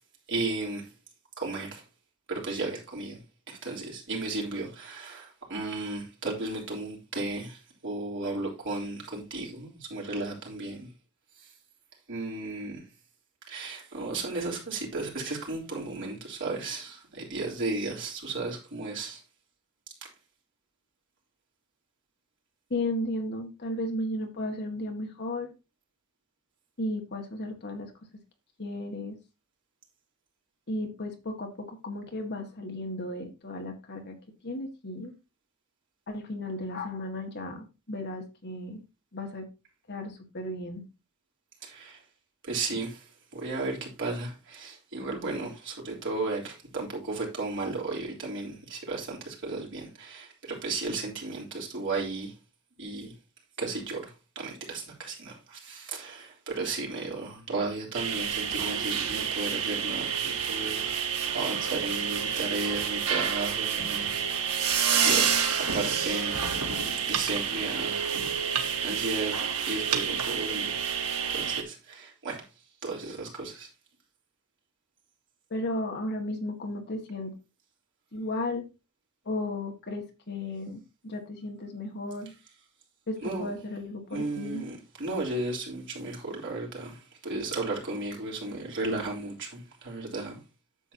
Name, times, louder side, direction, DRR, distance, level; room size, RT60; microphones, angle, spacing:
voice 1, 0.3-0.9 1.4-1.8 2.3-3.2 3.5-10.9 11.4-11.5 12.1-12.8 13.5-19.2 41.6-42.0 42.4-52.3 52.8-53.1 53.6-66.5 67.1-68.1 68.8-69.3 69.7-70.8 71.3-72.4 72.8-73.7 83.2-83.5 84.1-90.4, right 3 dB, 55° right, 3.6 m, -34 dB
voice 2, 22.7-25.5 26.8-27.9 28.6-29.2 30.7-34.2 34.4-35.1 36.1-38.8 39.1-39.5 39.9-40.8 75.5-77.3 78.1-78.6 79.3-82.3 83.1-84.6, left 1 dB, 50° left, 1.8 m, -34 dB
sound 1, 57.9-71.6, right 7 dB, 85° right, 1.6 m, -29 dB
10.0 x 7.6 x 2.8 m
head